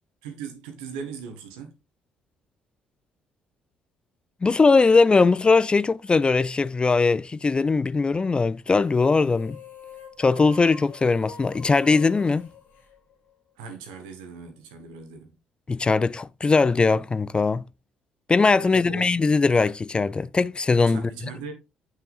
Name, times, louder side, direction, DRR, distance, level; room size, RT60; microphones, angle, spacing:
voice 1, 0.2-1.8 13.6-15.3 18.6-19.1 20.8-21.5, right 5 dB, 70° right, 1.6 m, -39 dB
voice 2, 4.4-9.6 10.2-12.5 15.7-17.6 18.3-21.0, left 4 dB, 25° left, 0.3 m, -20 dB
sound 1, 8.8-13.5, left 5 dB, 55° left, 1.7 m, -45 dB
7.7 x 6.5 x 2.5 m
figure-of-eight pair, 45°, 4 cm